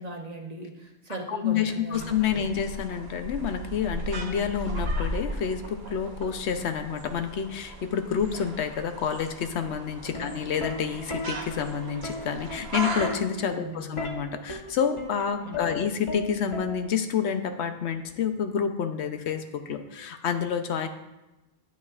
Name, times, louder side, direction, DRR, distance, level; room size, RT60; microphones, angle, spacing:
voice 1, 0.0-2.5 10.2-10.3 13.5-14.0 15.4-15.9, right 1 dB, 40° right, 1 dB, 0.8 m, -39 dB
voice 2, 1.3-20.9, left 7 dB, 80° left, 8 dB, 0.9 m, -29 dB
sound 1, 1.9-13.2, right 1 dB, 70° right, 1.2 m, -36 dB
Plucked string instrument, 10.1-17.2 18.3-18.6, left 2 dB, 30° left, 0.8 m, -37 dB
9.3 x 8.2 x 2.4 m, 1.0 s
omnidirectional pair, 1.1 m